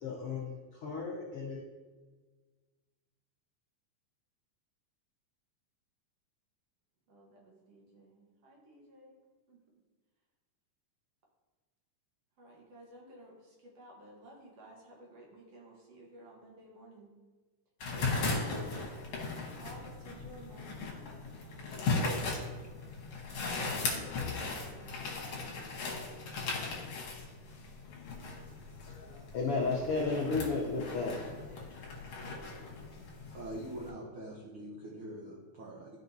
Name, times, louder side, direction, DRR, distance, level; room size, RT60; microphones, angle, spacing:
voice 1, 0.0-0.5 0.8-1.6 28.9-31.7, left 3 dB, 80° left, -2 dB, 1.2 m, -34 dB
voice 2, 7.1-9.2 9.5-9.6 12.4-17.1 17.9-18.8 19.6-20.7 22.3-22.4 23.6-25.0, equal, 60° right, -2 dB, 2.0 m, -53 dB
sound 1, 17.8-33.9, left 3 dB, 60° left, 1.8 m, -38 dB
voice 3, 33.3-36.0, right 1 dB, 80° right, -4 dB, 1.1 m, -44 dB
12.5 x 5.2 x 2.7 m, 1.4 s
omnidirectional pair, 3.8 m